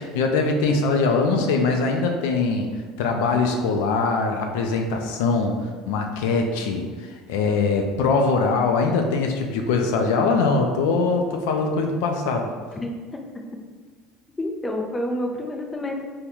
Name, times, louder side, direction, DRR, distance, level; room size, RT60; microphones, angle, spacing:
voice 1, 0.0-2.7 3.0-12.5, left 4 dB, 80° left, 3 dB, 0.4 m, -22 dB
voice 2, 12.8-13.2 14.4-16.0, left 1 dB, 20° left, 1 dB, 0.5 m, -29 dB
3.7 x 2.1 x 2.9 m, 1.5 s
supercardioid pair, 100°, 0 cm